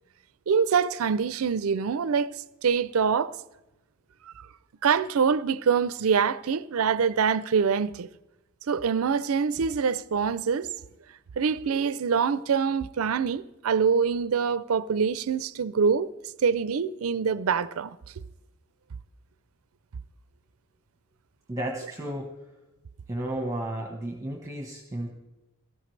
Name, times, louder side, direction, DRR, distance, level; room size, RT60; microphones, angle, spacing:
voice 1, 0.5-2.3 2.6-3.3 4.4-4.5 4.8-8.1 8.7-10.7 11.4-16.1 16.4-18.0, right 6 dB, 80° right, 0.5 m, -25 dB
voice 2, 21.5-22.3 23.1-25.1, right 1 dB, 15° right, 1.0 m, -33 dB
17.5 x 13.5 x 3.2 m
head